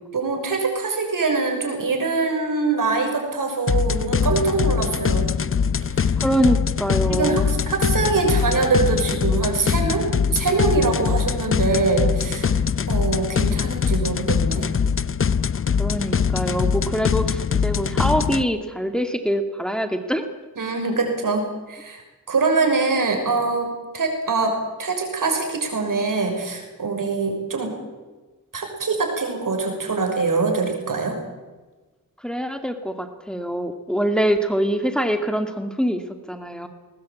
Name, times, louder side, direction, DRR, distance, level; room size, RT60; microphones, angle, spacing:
voice 1, 0.1-5.3 5.9-6.1 7.1-12.6 12.9-14.7 20.6-22.0 22.3-27.8 28.5-31.2, right 4 dB, 70° right, 4 dB, 6.3 m, -23 dB
sound 1, 3.7-18.4, left 6 dB, 40° left, 0.7 m, -22 dB
voice 2, 6.2-7.5 15.8-20.3 32.2-36.0 36.3-36.7, equal, ahead, 6 dB, 2.4 m, -24 dB
20.5 x 20.0 x 8.6 m, 1.3 s
cardioid pair, 65°, 34 cm